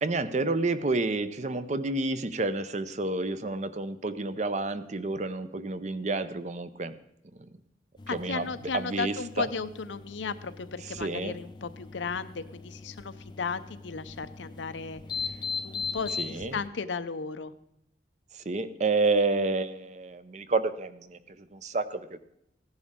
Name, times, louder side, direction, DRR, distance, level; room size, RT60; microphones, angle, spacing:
voice 1, 0.0-6.9 7.3-7.5 8.1-8.5 8.7-9.5 11.0-11.3 16.2-16.6 18.3-22.2, right 3 dB, 40° right, 12 dB, 0.6 m, -29 dB
sound 1, 8.0-16.7, left 5 dB, 25° left, 0.5 m, -40 dB
voice 2, 8.1-15.0 15.6-17.5, left 5 dB, 90° left, 12 dB, 0.7 m, -35 dB
16.0 x 10.5 x 3.7 m, 0.77 s
head